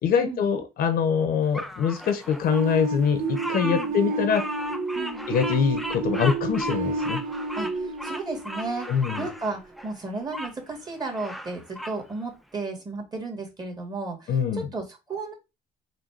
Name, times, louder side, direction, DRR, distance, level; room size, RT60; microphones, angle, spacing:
voice 1, 0.0-4.4 5.3-7.2 8.9-9.3 14.3-14.7, left 7 dB, 60° left, 0.9 m, -24 dB
Bird vocalization bird call bird song, 1.5-10.5 11.0-12.0, equal, ahead, 0.4 m, -36 dB
sound 1, 2.5-9.2, right 2 dB, 55° right, 0.6 m, -30 dB
voice 2, 4.9-5.3 7.5-8.9 9.2-15.3, right 3 dB, 25° right, 1.6 m, -34 dB
4.0 x 2.3 x 4.5 m
cardioid pair, 110°, 17 cm